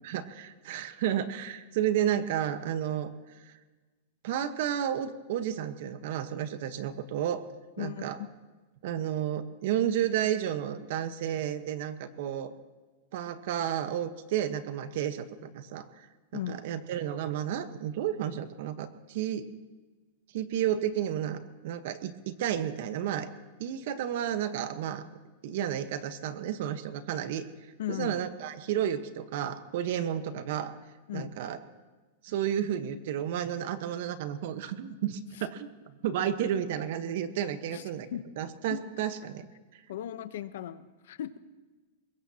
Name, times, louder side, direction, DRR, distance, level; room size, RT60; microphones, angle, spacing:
voice 1, 0.1-3.1 3.5-3.6 4.2-7.4 7.8-8.2 8.8-12.5 13.1-16.1 16.5-19.4 20.3-23.3 23.6-25.0 25.4-30.7 31.1-31.6 32.2-35.7 36.0-38.1 38.4-39.5, right 10 dB, 55° right, 10 dB, 1.2 m, -32 dB
voice 2, 7.8-8.3 16.3-16.6 27.8-28.2 31.1-31.3 35.4-35.5 37.7-38.2 38.7-39.0 39.9-41.4, left 11 dB, 70° left, 13 dB, 0.9 m, -37 dB
23.0 x 21.5 x 2.9 m, 1.2 s
supercardioid pair, 160°, 0 cm